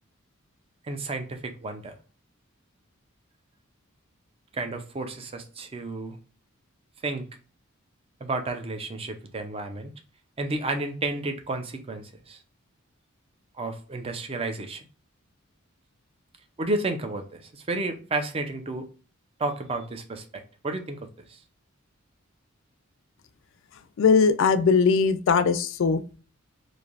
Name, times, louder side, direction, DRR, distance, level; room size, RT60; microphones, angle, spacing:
voice 1, 0.8-1.9 4.5-6.2 7.0-7.3 8.2-9.9 10.4-12.4 13.6-14.9 16.6-18.9 19.4-20.2 20.6-21.0 21.3-21.4, right 2 dB, 25° right, 0.4 m, -31 dB
voice 2, 24.0-26.2, left 5 dB, 60° left, 0.3 m, -20 dB
3.2 x 2.6 x 2.4 m
head